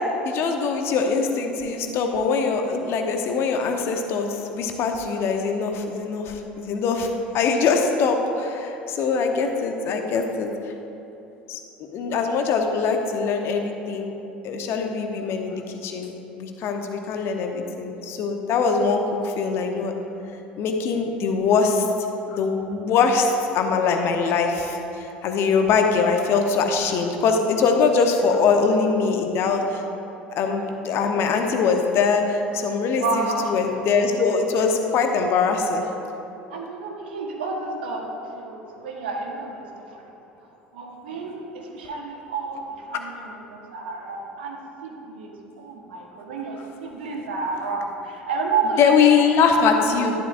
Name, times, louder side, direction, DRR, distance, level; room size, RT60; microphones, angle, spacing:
voice 1, 0.2-10.5 11.5-11.6 11.9-14.1 14.4-19.9 20.6-21.9 22.3-29.8 30.3-35.8 48.8-50.1, left 5 dB, 50° left, 4 dB, 1.0 m, -22 dB
voice 2, 33.0-33.8 36.5-40.1 40.7-48.8 49.2-49.3 49.5-49.7, right 4 dB, 70° right, 1 dB, 1.3 m, -30 dB
11.5 x 11.0 x 2.6 m, 3.0 s
figure-of-eight pair, 65°, 6 cm